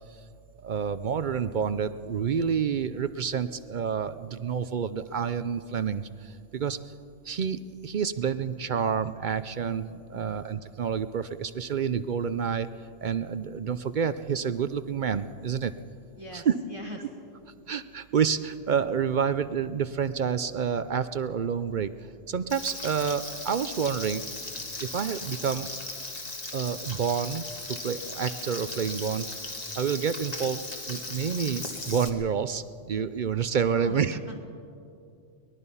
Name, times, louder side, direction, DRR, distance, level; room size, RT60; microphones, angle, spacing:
voice 1, 0.6-6.8 7.2-12.7 13.0-15.7 16.3-16.6 17.7-21.9 22.3-24.2 24.8-25.7 26.5-29.3 29.8-30.6 30.9-34.2, right 7 dB, 55° right, 13 dB, 0.6 m, -28 dB
voice 2, 16.2-17.0 33.8-34.3, equal, 25° right, -2 dB, 1.5 m, -42 dB
Frying (food), 22.5-32.1, left 2 dB, 35° left, 1.8 m, -37 dB
23.5 x 20.0 x 5.6 m, 2.5 s
omnidirectional pair, 1.2 m